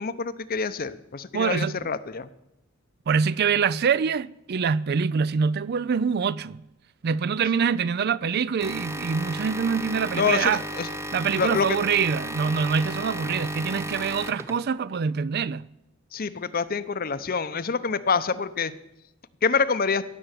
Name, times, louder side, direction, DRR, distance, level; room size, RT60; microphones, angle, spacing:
voice 1, 0.0-2.3 10.1-10.5 10.8-10.9 11.4-11.7 16.1-18.7 19.4-20.0, left 5 dB, 45° left, 0.7 m, -26 dB
voice 2, 1.3-1.7 3.1-6.6 7.0-10.6 11.1-15.6, right 6 dB, 50° right, 0.4 m, -25 dB
sound 1, 8.6-14.8, right 1 dB, 15° right, 0.8 m, -34 dB
17.0 x 6.9 x 9.0 m
head